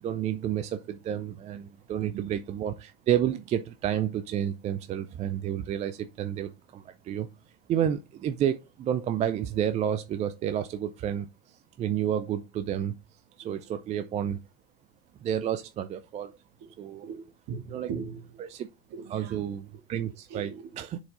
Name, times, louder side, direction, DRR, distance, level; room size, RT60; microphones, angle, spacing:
voice 1, 0.0-7.3 7.7-12.9 13.4-14.4 15.2-16.4 16.8-17.1 17.7-17.9 18.4-18.7 19.1-20.5 20.8-21.0, right 10 dB, 20° right, 0.4 m, -30 dB
voice 2, 17.0-18.4 18.9-19.5 20.3-20.7, right 6 dB, 40° right, 2.0 m, -39 dB
7.1 x 4.5 x 3.9 m
figure-of-eight pair, 80°, 39 cm